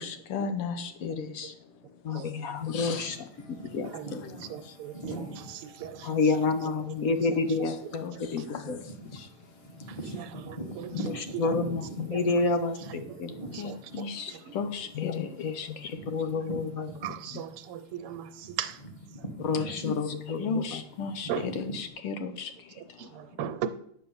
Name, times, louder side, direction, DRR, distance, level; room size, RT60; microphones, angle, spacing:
voice 1, 0.0-1.5 2.7-3.1 4.2-4.4 7.7-7.8 8.0-8.2 8.5-8.6 13.6-15.3 15.5-15.7 19.8-20.0 20.4-22.5, left 5 dB, 80° left, 9 dB, 1.9 m, -34 dB
voice 2, 2.0-4.2 6.0-8.1 8.3-8.8 10.9-13.3 14.9-15.5 16.1-16.9 19.4-20.8, left 4 dB, 60° left, 8 dB, 0.9 m, -29 dB
sound 1, 2.6-17.7 18.1-21.9, right 1 dB, 15° left, 1.7 m, -43 dB
voice 3, 3.8-8.6 9.9-11.6 12.1-14.5 15.1-15.2 16.8-19.3 19.7-19.8 20.4-20.5 21.3-21.5 22.8-23.7, right 9 dB, 85° right, 11 dB, 1.8 m, -40 dB
9.5 x 7.0 x 7.0 m, 0.68 s
omnidirectional pair, 2.4 m